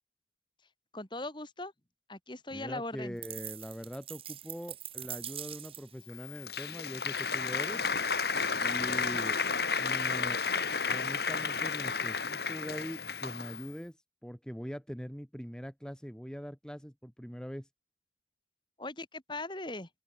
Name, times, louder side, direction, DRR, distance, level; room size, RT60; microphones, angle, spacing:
voice 1, 0.9-1.7 2.1-3.2 18.8-19.9, left 2 dB, 25° left, 3.7 m, -39 dB
voice 2, 2.5-7.8 8.6-9.4 9.8-10.4 10.9-14.0 14.2-17.7, equal, 5° left, 2.7 m, -42 dB
sound 1, 3.2-6.0, right 11 dB, 30° right, 1.6 m, -43 dB
Applause, 6.1-13.7, left 5 dB, 60° left, 3.6 m, -32 dB
open air
head